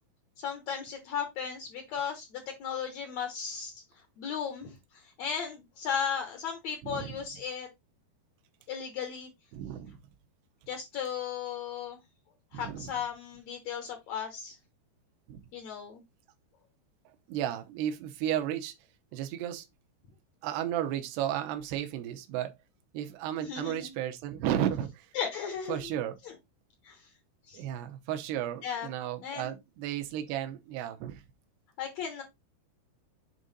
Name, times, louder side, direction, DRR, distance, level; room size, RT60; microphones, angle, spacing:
voice 1, 0.4-3.8 4.2-7.7 8.7-9.3 10.7-12.0 12.5-14.6 15.5-16.0 23.4-23.9 25.1-25.8 26.2-26.3 26.8-27.1 27.5-27.6 28.6-28.9 29.2-29.5 31.8-32.2, left 7 dB, 70° left, 1.6 m, -36 dB
voice 2, 6.8-7.2 9.5-10.0 12.5-12.9 15.3-15.4 17.3-18.7 19.1-19.7 20.4-22.5 22.9-25.1 25.7-26.2 27.5-31.2, right 11 dB, 85° right, 2.9 m, -33 dB
7.8 x 3.7 x 4.0 m
omnidirectional pair, 4.6 m